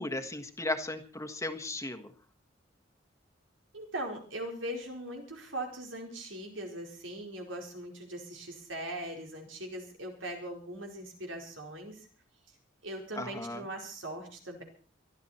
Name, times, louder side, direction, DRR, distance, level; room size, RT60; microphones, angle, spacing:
voice 1, 0.0-2.1 13.2-13.6, left 2 dB, 15° left, 7 dB, 1.5 m, -36 dB
voice 2, 3.7-12.1 12.8-14.6, right 1 dB, 85° right, 2 dB, 4.7 m, -40 dB
23.0 x 12.5 x 4.4 m, 0.40 s
head